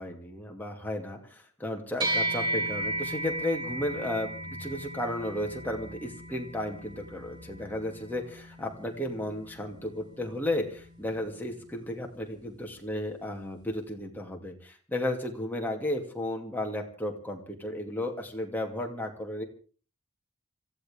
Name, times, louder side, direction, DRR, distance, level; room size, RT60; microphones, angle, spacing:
voice 1, 0.0-19.4, left 1 dB, 10° left, 1 dB, 2.4 m, -34 dB
sound 1, 2.0-11.6, right 1 dB, 25° right, 5.1 m, -36 dB
26.0 x 15.0 x 3.7 m, 0.39 s
head